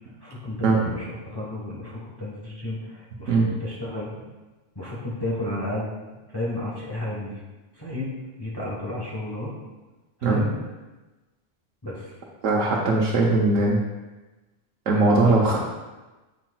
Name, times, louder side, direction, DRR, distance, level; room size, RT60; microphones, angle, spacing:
voice 1, 0.2-4.1 4.7-5.9 6.3-7.4 7.7-9.5 10.2-10.5 11.8-12.1, left 1 dB, 20° left, -6 dB, 1.3 m, -32 dB
voice 2, 12.4-13.8 14.9-15.6, right 3 dB, 85° right, -3 dB, 1.2 m, -20 dB
8.2 x 5.8 x 2.3 m, 1.2 s
omnidirectional pair, 1.3 m